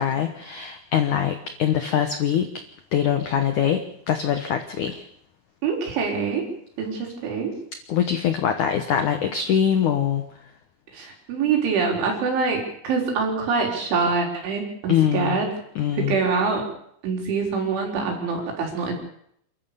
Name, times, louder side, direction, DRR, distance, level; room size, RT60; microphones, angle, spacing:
voice 1, 0.0-2.5 2.9-5.0 7.9-10.2 14.9-15.4 15.8-16.2, left 9 dB, 80° left, 7 dB, 1.7 m, -23 dB
voice 2, 5.6-6.5 6.8-7.5 10.9-15.5 16.0-16.6 17.0-18.9, right 5 dB, 85° right, 1 dB, 6.6 m, -25 dB
29.0 x 13.5 x 6.9 m, 0.68 s
omnidirectional pair, 5.3 m